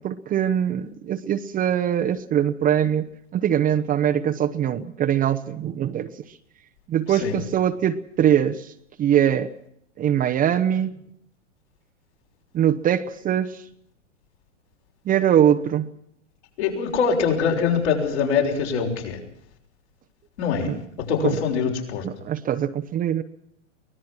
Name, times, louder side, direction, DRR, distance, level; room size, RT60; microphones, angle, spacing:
voice 1, 0.0-6.4 6.9-8.7 9.0-9.5 10.0-11.0 12.5-13.6 15.0-15.9 20.6-20.8 21.2-21.4 22.0-23.2, right 10 dB, 25° right, 8 dB, 0.9 m, -22 dB
voice 2, 16.6-19.2 20.4-20.7 21.0-22.1, left 6 dB, 65° left, 1 dB, 6.3 m, -23 dB
24.5 x 18.5 x 6.0 m, 0.72 s
hypercardioid pair, 115°, 36 cm